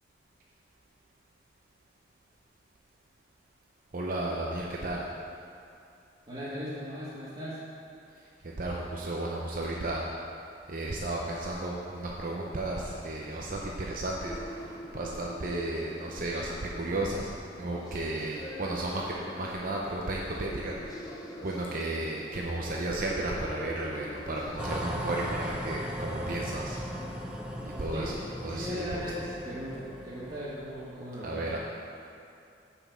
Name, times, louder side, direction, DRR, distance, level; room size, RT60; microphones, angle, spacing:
voice 1, 3.9-5.1 8.1-10.1 10.7-26.8 27.6-29.1 31.2-31.6, right 2 dB, 50° right, -2 dB, 0.7 m, -34 dB
voice 2, 6.3-7.6 27.9-28.1 28.5-31.4, equal, 30° right, -12 dB, 1.6 m, -37 dB
sound 1, 14.2-25.7, equal, 20° left, 0.8 m, -44 dB
sound 2, 24.6-30.6, equal, 5° right, 0.6 m, -38 dB
6.3 x 5.7 x 7.2 m, 2.6 s
head